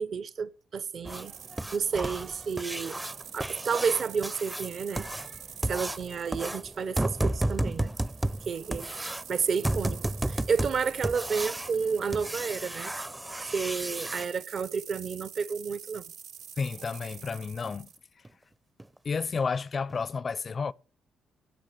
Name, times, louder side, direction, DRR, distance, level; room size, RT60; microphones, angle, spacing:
voice 1, 0.0-1.3 1.7-3.0 3.3-5.1 5.6-7.9 8.5-12.9 13.3-16.0, right 6 dB, 55° right, 0.7 m, -31 dB
sound 1, 1.0-14.2 16.6-16.7 17.1-17.2 17.7-17.8 18.2-18.3 18.8-19.0 19.3-19.4 19.9-20.0, right 1 dB, 10° right, 0.5 m, -33 dB
sound 2, 1.2-18.0, right 8 dB, 80° right, 0.9 m, -47 dB
voice 2, 16.6-17.9 18.2-18.3 19.0-20.7, left 5 dB, 40° left, 0.5 m, -31 dB
16.0 x 5.9 x 6.7 m
cardioid pair, 90°, 0 cm